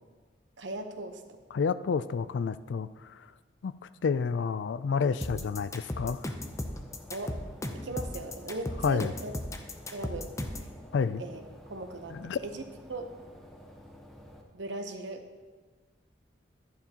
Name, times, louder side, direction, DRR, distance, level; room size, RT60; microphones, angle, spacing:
voice 1, 0.6-1.4 7.1-7.4 7.8-9.3 9.9-10.3 10.6-10.7 11.2-11.4 11.7-12.6 12.9-13.1 14.5-15.2, right 2 dB, 85° right, 7 dB, 0.9 m, -38 dB
voice 2, 1.5-3.2 3.6-3.7 4.0-6.3 8.8-9.1 10.9-11.2 12.1-12.4, left 5 dB, 80° left, 15 dB, 0.4 m, -29 dB
sound 1, 5.2-10.7, left 1 dB, 15° left, 0.6 m, -36 dB
sound 2, 6.4-14.4, equal, ahead, 1.0 m, -51 dB
11.5 x 11.0 x 2.9 m, 1.4 s
head